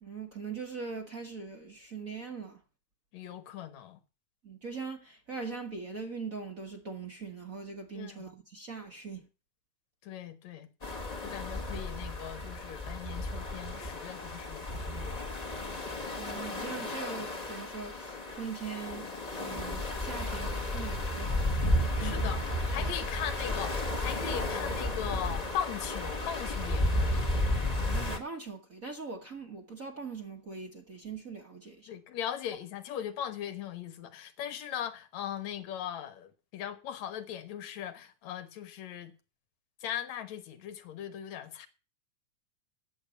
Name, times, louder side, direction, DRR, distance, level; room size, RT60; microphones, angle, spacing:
voice 1, 0.0-2.6 4.4-9.3 16.2-19.1 19.4-22.4 22.8-22.9 27.7-31.9, right 5 dB, 50° right, 1.0 m, -41 dB
voice 2, 3.1-4.0 7.9-8.3 10.0-10.7 11.2-15.4 22.0-27.3 31.9-39.1 39.8-41.7, left 9 dB, 65° left, 2.4 m, -39 dB
sound 1, 10.8-28.2, left 1 dB, 35° left, 0.5 m, -33 dB
9.2 x 7.5 x 8.3 m
omnidirectional pair, 3.6 m